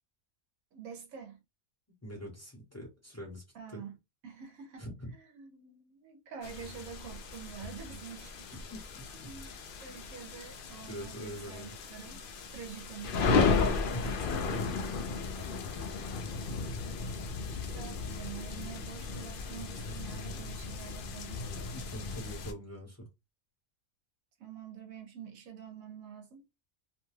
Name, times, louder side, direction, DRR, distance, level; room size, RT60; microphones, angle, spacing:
voice 1, 0.7-1.4 3.5-4.0 4.2-8.6 9.1-12.2 12.5-13.5 13.8-13.9 17.6-21.5 24.4-26.4, right 7 dB, 75° right, 1.0 m, -47 dB
voice 2, 2.0-3.4 3.7-3.8 4.8-5.1 8.5-9.3 10.9-11.7 13.9-14.3 15.2-15.3 21.7-23.1, equal, 15° left, 0.8 m, -44 dB
sound 1, 6.4-22.5, left 4 dB, 70° left, 0.5 m, -35 dB
2.6 x 2.2 x 3.1 m
omnidirectional pair, 1.5 m